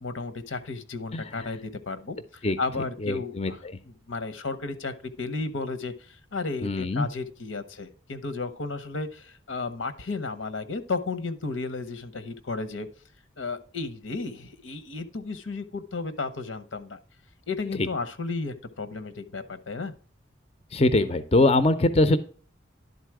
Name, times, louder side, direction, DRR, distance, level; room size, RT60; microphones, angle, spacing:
voice 1, 0.0-3.6 4.1-12.9 13.4-17.0 17.5-19.9, left 3 dB, 90° left, 11 dB, 0.9 m, -33 dB
voice 2, 1.1-1.5 2.4-2.6 3.0-3.8 6.6-7.1 17.7-17.9 20.7-22.2, left 2 dB, 30° left, 12 dB, 0.5 m, -23 dB
11.0 x 4.1 x 4.7 m, 0.42 s
head